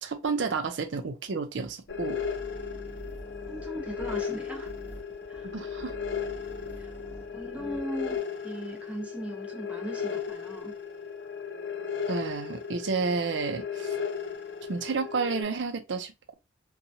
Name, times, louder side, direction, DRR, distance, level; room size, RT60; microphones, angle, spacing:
voice 1, 0.0-2.2 5.5-5.9 12.1-14.0 14.7-16.3, right 4 dB, 80° right, 0.5 m, -31 dB
sound 1, 1.9-15.4, left 6 dB, 70° left, 0.5 m, -36 dB
sound 2, 1.9-8.2, equal, 35° left, 0.7 m, -46 dB
voice 2, 3.5-4.7 5.3-5.5 6.8-6.9 7.3-10.7, equal, 10° right, 0.7 m, -38 dB
2.8 x 2.3 x 2.7 m
head